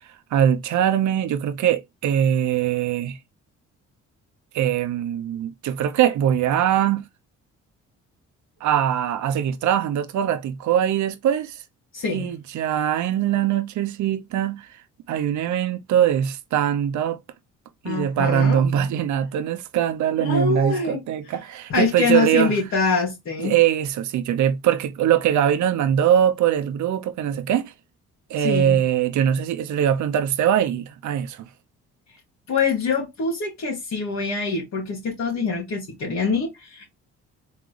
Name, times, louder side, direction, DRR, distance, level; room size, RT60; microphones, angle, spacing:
voice 1, 0.3-3.2 4.5-7.0 8.6-11.6 12.1-14.7 15.1-17.2 17.8-22.5 23.4-27.7 28.3-31.5, right 10 dB, 75° right, 0.7 m, -22 dB
voice 2, 11.9-12.3 17.8-18.6 20.2-21.0 21.7-23.5 28.4-28.8 32.5-36.9, left 4 dB, 65° left, 1.9 m, -24 dB
3.8 x 3.2 x 3.2 m
cardioid pair, 90°, 30 cm